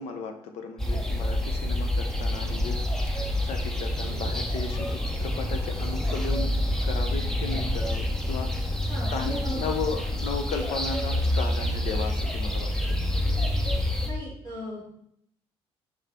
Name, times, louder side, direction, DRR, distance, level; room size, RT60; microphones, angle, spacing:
voice 1, 0.0-6.5 6.8-8.8 9.1-13.0, left 4 dB, 85° left, 6 dB, 0.8 m, -35 dB
sound 1, 0.8-14.1, left 1 dB, 5° left, 0.6 m, -27 dB
voice 2, 8.9-9.6 14.0-14.8, left 1 dB, 40° left, -8 dB, 2.7 m, -37 dB
5.5 x 5.4 x 3.6 m, 0.72 s
cardioid pair, 165°, 11 cm